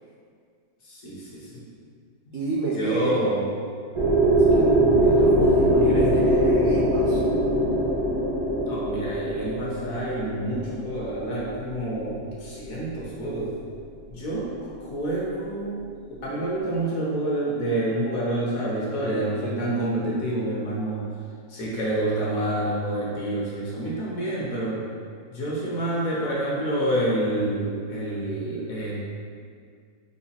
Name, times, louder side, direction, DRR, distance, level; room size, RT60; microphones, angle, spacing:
voice 1, 0.8-1.7 2.7-3.4 4.5-4.6 8.6-13.6 14.1-21.1 21.5-24.8 25.3-29.0, right 1 dB, 65° left, -6 dB, 1.0 m, -28 dB
voice 2, 2.3-3.2 4.5-4.7 5.0-7.2, right 3 dB, 75° right, -5 dB, 0.7 m, -28 dB
sound 1, 3.9-11.8, right 1 dB, 40° right, 0.4 m, -21 dB
4.9 x 2.4 x 2.8 m, 2.1 s
omnidirectional pair, 1.8 m